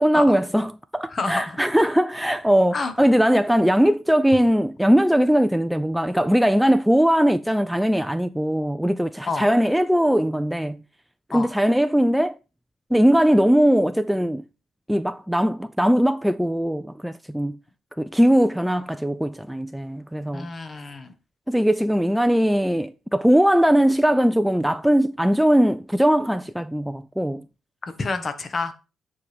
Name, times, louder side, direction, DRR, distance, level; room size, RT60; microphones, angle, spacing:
voice 1, 0.0-10.8 11.3-12.4 12.9-14.4 14.9-17.6 18.0-20.5 21.5-27.5, equal, 5° right, 0.3 m, -20 dB
voice 2, 1.1-1.6 2.7-2.9 9.3-9.5 11.3-11.5 20.3-21.1 27.8-28.7, left 3 dB, 35° left, 1.2 m, -28 dB
9.4 x 4.4 x 3.5 m
cardioid pair, 90°, 0 cm